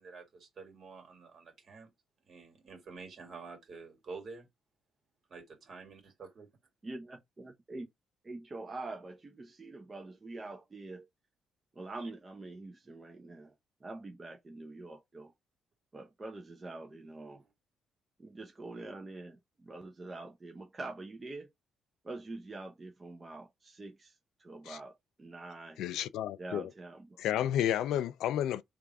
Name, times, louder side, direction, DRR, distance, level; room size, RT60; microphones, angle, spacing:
voice 1, 0.0-1.9 2.2-4.5 5.3-6.5 12.0-12.1, right 4 dB, 50° right, 2.0 m, -49 dB
voice 2, 6.8-7.9 8.2-11.1 11.7-13.6 13.8-15.3 15.9-17.4 18.2-21.5 22.0-25.8 26.4-27.2, right 2 dB, 25° right, 0.7 m, -45 dB
voice 3, 25.8-26.7 27.2-28.6, left 11 dB, 85° left, 0.3 m, -31 dB
3.4 x 2.5 x 4.5 m
cardioid pair, 90°, 0 cm